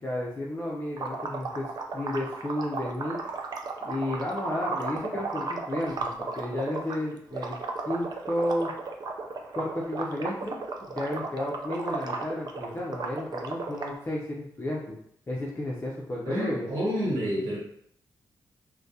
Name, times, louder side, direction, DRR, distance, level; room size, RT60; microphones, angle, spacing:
voice 1, 0.0-3.2 3.8-7.6 7.8-8.7 9.6-10.6 10.9-15.0 15.3-16.7, left 1 dB, 30° left, -4 dB, 0.5 m, -32 dB
sound 1, 1.0-7.0 7.3-13.9, right 4 dB, 55° right, 0.4 m, -34 dB
voice 2, 16.2-17.6, equal, 75° right, -7 dB, 1.0 m, -29 dB
2.2 x 2.1 x 2.7 m, 0.69 s
cardioid pair, 60°, 8 cm